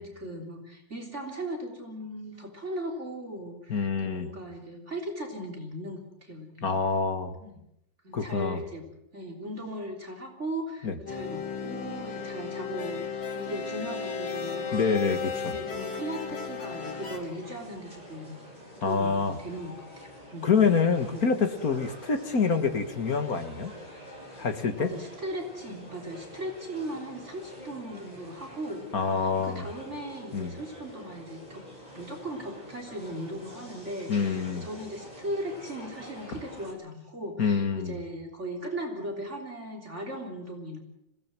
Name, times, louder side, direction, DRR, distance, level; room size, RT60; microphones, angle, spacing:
voice 1, 0.0-6.7 7.4-7.5 8.0-8.8 9.1-14.8 15.5-18.5 18.7-20.5 21.1-21.3 24.8-31.7 31.9-40.8, right 1 dB, 35° right, 3 dB, 3.9 m, -38 dB
voice 2, 3.7-4.3 6.6-7.3 8.1-8.6 10.8-10.9 14.7-15.6 18.8-19.4 20.4-23.7 24.4-24.9 28.9-29.7 30.3-30.5 34.1-34.7 37.4-38.0, left 5 dB, 50° left, 8 dB, 2.2 m, -26 dB
sound 1, 11.1-17.2, left 5 dB, 70° left, 4.6 m, -34 dB
sound 2, 17.0-36.7, equal, 20° left, 6.0 m, -47 dB
26.0 x 18.0 x 7.6 m, 0.81 s
omnidirectional pair, 2.0 m